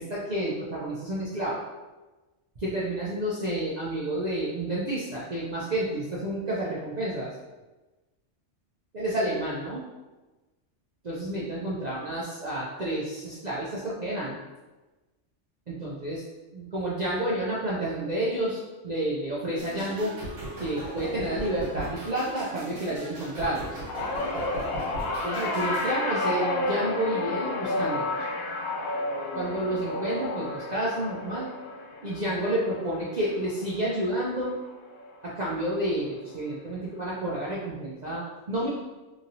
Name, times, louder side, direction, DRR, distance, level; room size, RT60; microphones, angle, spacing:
voice 1, 0.0-1.7 2.6-7.3 8.9-9.8 11.0-14.4 15.7-16.2 16.5-20.2 20.6-23.8 25.2-28.1 29.3-31.5 32.0-34.6 35.2-38.7, right 1 dB, 55° right, -7 dB, 0.5 m, -30 dB
sound 1, 19.6-25.9, right 1 dB, 90° right, 1.4 m, -38 dB
sound 2, 23.9-34.3 34.7-35.1 36.2-36.3, left 2 dB, 65° left, 0.7 m, -31 dB
3.0 x 2.7 x 2.6 m, 1.2 s
omnidirectional pair, 1.3 m